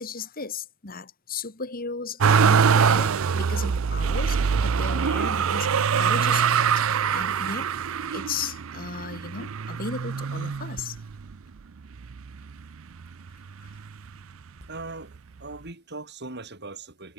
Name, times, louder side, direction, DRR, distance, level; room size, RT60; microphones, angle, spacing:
voice 1, 0.0-7.9 8.1-11.0 13.6-13.7, left 4 dB, 45° left, 3.0 m, -35 dB
Motor vehicle (road), 2.2-11.3 11.9-12.7 13.0-14.1 15.1-15.2, right 6 dB, 90° right, 0.5 m, -24 dB
voice 2, 14.6-17.1, right 3 dB, 55° right, 4.7 m, -40 dB
head